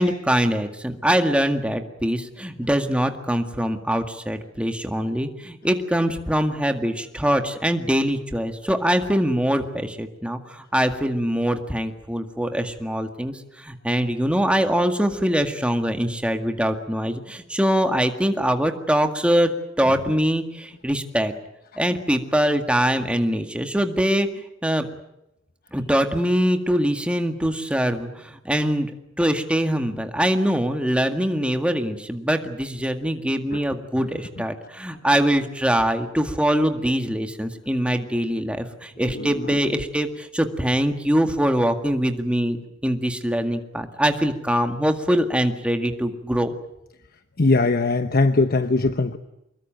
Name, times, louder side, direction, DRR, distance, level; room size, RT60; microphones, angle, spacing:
voice 1, 0.0-19.5 19.8-21.3 21.8-24.9 25.7-28.9 29.2-46.5, equal, 5° right, 6 dB, 1.9 m, -23 dB
voice 2, 39.1-39.8 47.4-49.2, left 3 dB, 50° left, 10 dB, 1.0 m, -21 dB
25.0 x 21.5 x 9.2 m, 0.85 s
head